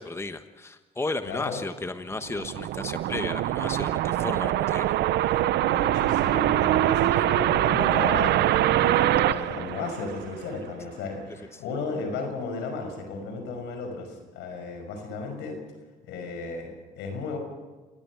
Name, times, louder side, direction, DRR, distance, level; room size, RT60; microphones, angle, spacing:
voice 1, 0.0-5.5 11.5-11.6, left 2 dB, 15° left, 9 dB, 1.2 m, -34 dB
voice 2, 1.3-1.6 5.5-15.6 16.0-17.4, left 3 dB, 85° left, 5 dB, 5.5 m, -34 dB
sound 1, 2.1-10.5, right 14 dB, 75° right, 0.8 m, -24 dB
29.0 x 16.5 x 6.1 m, 1.3 s
supercardioid pair, 80°, 18 cm